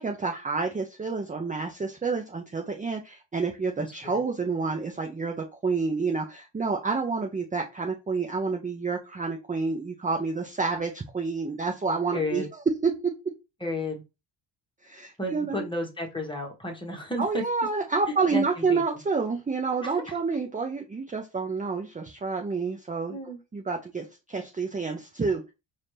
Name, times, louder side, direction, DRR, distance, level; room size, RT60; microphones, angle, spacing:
voice 1, 0.0-12.4 12.8-12.9 14.8-15.6 17.2-23.2 23.5-25.5, right 4 dB, 15° right, 2 dB, 0.6 m, -29 dB
voice 2, 3.8-4.2 12.1-12.5 13.6-14.0 15.2-17.4 18.3-19.0 19.8-20.2 23.1-23.4, left 1 dB, 10° left, 1 dB, 1.4 m, -33 dB
4.1 x 2.6 x 3.2 m, 0.27 s
supercardioid pair, 75°, 48 cm